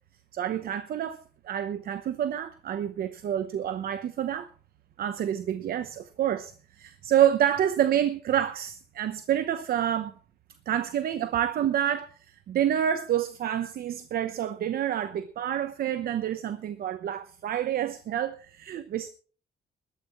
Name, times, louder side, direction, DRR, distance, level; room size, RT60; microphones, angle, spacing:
voice 1, 0.3-4.5 5.0-10.2 10.7-19.1, right 10 dB, 60° right, 0.9 m, -28 dB
21.0 x 13.0 x 3.1 m
cardioid pair, 175°, 18 cm